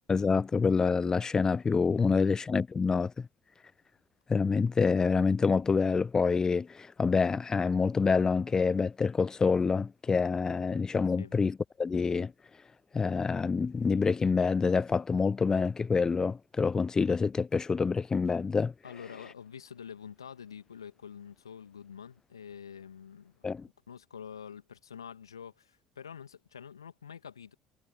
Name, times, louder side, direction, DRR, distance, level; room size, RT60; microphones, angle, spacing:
voice 1, 0.1-3.3 4.3-12.3 12.9-18.7 23.4-23.7, left 5 dB, 25° left, 0.7 m, -27 dB
voice 2, 2.0-2.3 11.2-11.3 18.8-23.4 23.9-27.5, left 7 dB, 80° left, 2.6 m, -47 dB
figure-of-eight pair, 55°, 3 cm